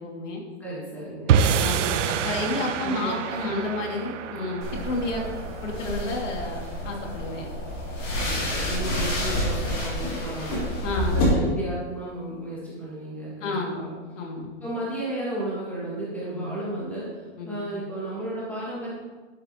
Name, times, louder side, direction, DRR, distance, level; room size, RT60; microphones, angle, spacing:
voice 1, 0.0-0.4 1.6-5.2 5.6-7.5 10.8-11.3 13.4-13.8 14.1-14.6 16.3-16.5 17.4-17.6, left 2 dB, 80° left, -1 dB, 3.2 m, -31 dB
voice 2, 0.6-1.9 2.8-3.2 3.5-3.7 8.2-10.7 11.1-13.9 14.6-18.9, right 1 dB, 5° left, -8 dB, 2.7 m, -33 dB
sound 1, 1.3-7.7, right 7 dB, 80° right, 0.8 m, -27 dB
sound 2, 4.6-11.2, left 1 dB, 35° left, 3.5 m, -29 dB
11.5 x 10.5 x 3.3 m, 1.3 s
supercardioid pair, 175°, 36 cm